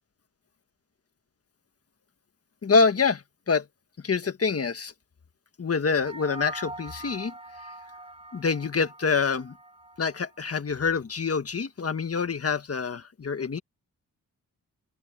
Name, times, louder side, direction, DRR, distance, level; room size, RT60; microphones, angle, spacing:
voice 1, 2.6-3.7 4.0-4.9 5.6-7.3 8.3-9.6 10.0-13.6, left 5 dB, 40° left, 1.5 m, -26 dB
sound 1, 5.9-10.5, right 2 dB, 15° right, 7.5 m, -43 dB
open air
cardioid pair, 85°, 35 cm